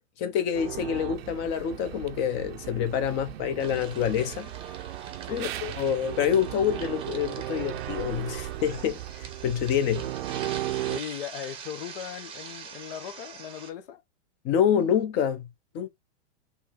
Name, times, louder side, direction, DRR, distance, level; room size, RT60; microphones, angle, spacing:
voice 1, 0.2-4.5 5.3-10.1 14.4-15.5 15.7-15.9, left 9 dB, 30° left, 1.0 m, -27 dB
sound 1, 0.5-11.0, right 13 dB, 55° right, 0.6 m, -36 dB
sound 2, 3.6-13.7, right 6 dB, 15° right, 0.9 m, -44 dB
voice 2, 10.9-14.0, left 10 dB, 50° left, 1.0 m, -38 dB
4.2 x 3.3 x 3.7 m
supercardioid pair, 155°, 35 cm